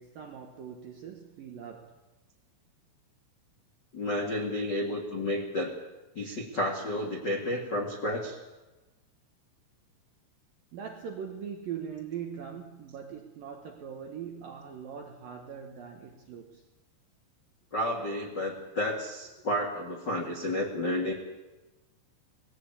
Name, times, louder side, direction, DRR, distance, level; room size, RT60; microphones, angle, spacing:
voice 1, 0.0-2.0 10.7-16.7, right 7 dB, 75° right, 4 dB, 2.1 m, -41 dB
voice 2, 3.9-5.7 6.1-8.4 17.7-21.1, left 1 dB, 75° left, 1 dB, 1.0 m, -31 dB
19.5 x 17.5 x 8.6 m, 1.1 s
omnidirectional pair, 6.0 m